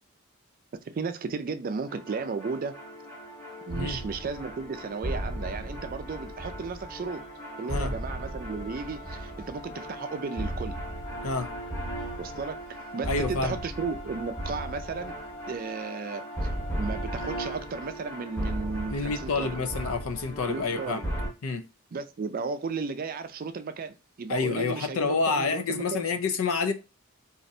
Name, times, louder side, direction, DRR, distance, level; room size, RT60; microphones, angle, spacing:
voice 1, 0.7-2.7 3.7-7.2 7.6-10.8 12.2-12.6 12.9-15.2 15.5-16.5 16.8-19.6 20.5-21.0 21.9-26.0, right 4 dB, 45° right, 0.4 m, -34 dB
sound 1, 1.9-21.3, right 1 dB, 10° left, 1.3 m, -36 dB
voice 2, 13.1-13.6 18.9-21.1 21.4-21.7 24.3-26.7, left 4 dB, 90° left, 0.5 m, -28 dB
4.1 x 2.5 x 2.6 m
head